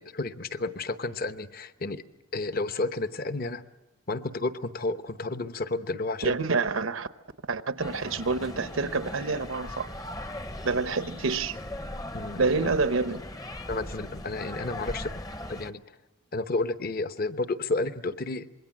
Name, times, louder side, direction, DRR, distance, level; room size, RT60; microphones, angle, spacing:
voice 1, 0.0-2.0 2.3-3.6 4.1-6.4 12.1-12.7 13.7-15.1 15.5-15.8 16.3-18.5, left 2 dB, 45° left, 11 dB, 0.9 m, -31 dB
voice 2, 6.2-7.1 7.5-9.9 10.6-11.6 12.4-13.2, right 4 dB, 75° right, 12 dB, 0.9 m, -27 dB
sound 1, 7.8-15.7, left 1 dB, 15° left, 0.8 m, -39 dB
26.0 x 22.0 x 7.5 m, 0.98 s
head